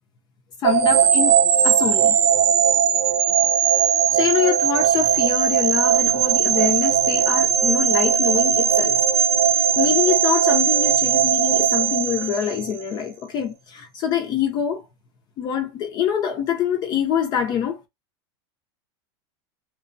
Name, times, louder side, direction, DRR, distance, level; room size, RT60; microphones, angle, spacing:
voice 1, 0.6-1.4 1.6-2.2 4.1-9.0 9.5-14.8 15.4-17.8, left 8 dB, 30° left, 0.5 m, -25 dB
sound 1, 0.6-12.8, right 8 dB, 80° right, 0.6 m, -19 dB
2.9 x 2.1 x 2.5 m
supercardioid pair, 145°, 14 cm